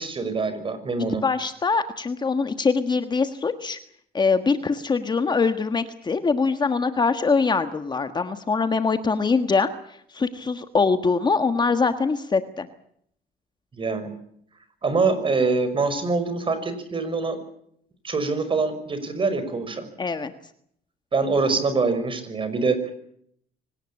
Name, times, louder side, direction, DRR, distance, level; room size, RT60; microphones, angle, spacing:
voice 1, 0.0-1.2 13.7-14.1 14.8-17.4 18.0-19.9 21.1-22.8, right 4 dB, 30° right, 11 dB, 5.8 m, -24 dB
voice 2, 1.2-3.8 4.1-9.7 10.1-12.7 20.0-20.3, left 4 dB, 25° left, 9 dB, 1.5 m, -23 dB
25.0 x 18.5 x 8.7 m, 0.69 s
cardioid pair, 110°, 17 cm